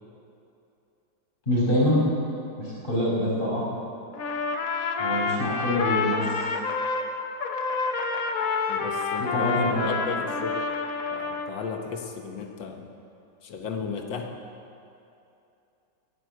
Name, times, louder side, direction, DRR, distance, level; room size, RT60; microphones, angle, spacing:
voice 1, 1.5-2.0 2.6-3.6 5.0-6.5 9.2-10.0, equal, 25° left, -6 dB, 5.1 m, -25 dB
Trumpet, 4.1-7.1 7.4-11.5, left 4 dB, 50° left, 1.3 m, -28 dB
voice 2, 8.7-9.5 9.8-10.6 11.1-12.9 13.4-14.3, left 5 dB, 75° left, 3 dB, 1.9 m, -35 dB
20.5 x 8.0 x 7.8 m, 2.7 s
omnidirectional pair, 2.1 m